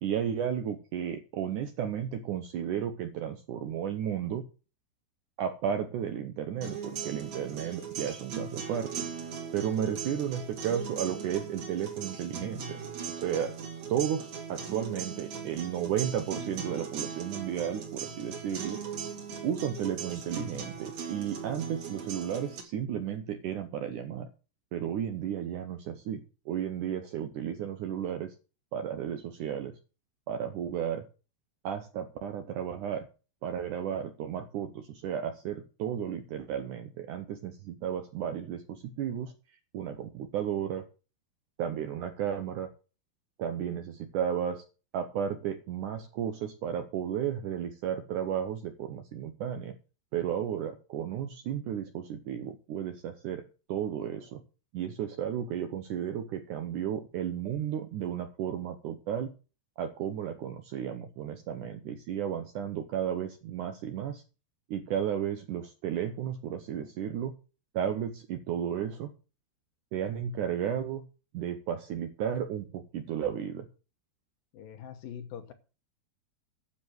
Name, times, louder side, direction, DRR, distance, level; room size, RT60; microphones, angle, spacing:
voice 1, 0.0-4.4 5.4-8.9 9.5-12.8 13.1-13.5 13.9-18.8 19.4-24.3 24.7-26.2 26.5-28.3 28.7-29.8 30.3-31.0 31.6-33.1 33.4-39.3 39.7-40.8 41.6-42.7 43.4-44.6 44.9-49.8 50.1-53.4 53.7-54.4 54.7-59.3 59.8-64.2 64.7-67.3 67.7-69.1 69.9-71.0 71.3-73.7, right 9 dB, 70° right, 7 dB, 1.9 m, -33 dB
sound 1, 6.6-22.6, right 6 dB, 50° right, 3.5 m, -39 dB
voice 2, 74.5-75.5, left 9 dB, 70° left, 8 dB, 2.5 m, -43 dB
10.0 x 7.4 x 7.9 m, 0.35 s
omnidirectional pair, 4.7 m